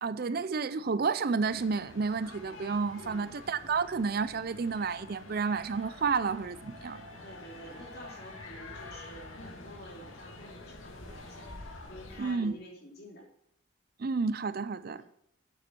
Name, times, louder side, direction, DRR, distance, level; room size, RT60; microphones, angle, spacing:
voice 1, 0.0-7.0 12.2-12.5 14.0-15.0, right 5 dB, 45° right, 0.5 m, -31 dB
sound 1, 1.4-12.3, left 2 dB, 80° left, 2.2 m, -48 dB
voice 2, 7.2-13.3 14.8-15.0, right 1 dB, 50° left, 3.3 m, -49 dB
8.8 x 7.8 x 6.1 m
head